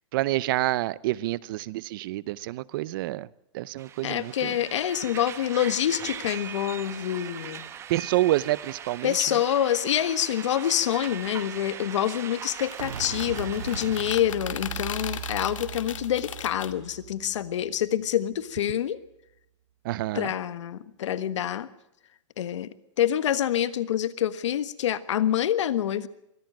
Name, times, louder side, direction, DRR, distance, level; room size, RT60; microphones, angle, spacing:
voice 1, 0.1-3.3 3.5-4.5 7.9-9.4 19.8-20.3, right 16 dB, 45° right, 21 dB, 0.7 m, -28 dB
sound 1, 3.8-14.1, right 8 dB, 15° right, 1.1 m, -40 dB
voice 2, 4.0-7.6 9.0-19.0 20.1-21.7 22.4-22.7 23.0-26.1, left 11 dB, 70° left, 14 dB, 1.4 m, -26 dB
sound 2, 12.6-16.7, left 8 dB, 85° left, 2.2 m, -37 dB
sound 3, 12.8-18.4 18.7-18.8, right 9 dB, 85° right, 1.0 m, -39 dB
23.5 x 15.0 x 7.7 m, 0.85 s
hypercardioid pair, 155°, 16 cm